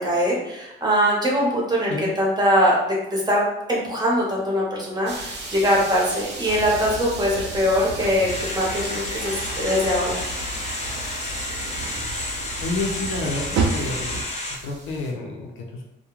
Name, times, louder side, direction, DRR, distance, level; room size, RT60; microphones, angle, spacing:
voice 1, 0.0-2.8 3.1-3.4 3.7-10.2, equal, 20° right, -4 dB, 1.0 m, -22 dB
sound 1, 5.1-15.1, right 2 dB, 60° right, 0.8 m, -38 dB
sound 2, 6.4-14.2, right 3 dB, 80° right, 0.5 m, -32 dB
sound 3, 8.3-14.6, left 2 dB, 35° left, 0.6 m, -31 dB
voice 2, 12.6-14.2 14.6-15.8, left 3 dB, 85° left, 0 dB, 0.6 m, -29 dB
2.3 x 2.2 x 3.0 m, 0.89 s
cardioid pair, 90°, 20 cm